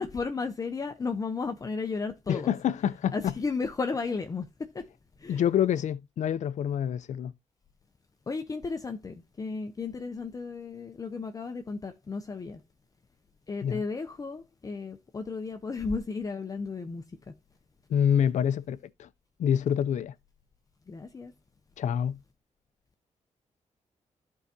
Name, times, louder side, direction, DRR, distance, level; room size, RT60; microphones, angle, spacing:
voice 1, 0.0-2.5 3.1-4.9 5.2-5.4 8.3-12.6 13.5-17.3 20.9-21.3, left 4 dB, 30° left, 0.7 m, -34 dB
voice 2, 2.3-3.3 5.3-7.3 13.6-13.8 17.9-19.1 19.4-20.1 21.8-22.2, left 9 dB, 75° left, 0.5 m, -27 dB
14.0 x 4.7 x 2.7 m
wide cardioid pair, 140°, 13 cm